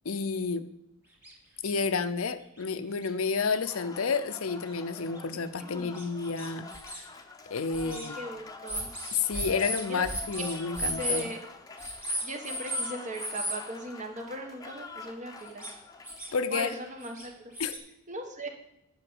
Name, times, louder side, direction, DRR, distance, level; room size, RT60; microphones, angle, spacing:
voice 1, 0.0-0.7 1.6-7.1 7.5-8.2 9.1-11.3 16.3-16.7 17.6-17.8, left 5 dB, 85° left, 11 dB, 0.7 m, -30 dB
sound 1, 1.2-1.3 1.6-1.8 2.6-2.7 3.0-3.1 3.7-3.8 4.7-4.8 5.2-5.3 5.9-7.0 7.7-8.1 8.7-11.3 11.8-12.9 13.1-13.6 15.4-15.7 16.0-16.8 17.0-17.8, equal, 5° right, 2.3 m, -35 dB
Applause, 3.4-17.0, left 4 dB, 15° left, 0.8 m, -46 dB
voice 2, 5.6-5.9 7.8-8.9 9.9-10.0 10.3-10.4 10.8-11.4 12.2-15.7 16.5-17.5 18.1-18.5, right 1 dB, 35° right, 4 dB, 1.5 m, -38 dB
8.9 x 5.6 x 7.9 m, 0.81 s
head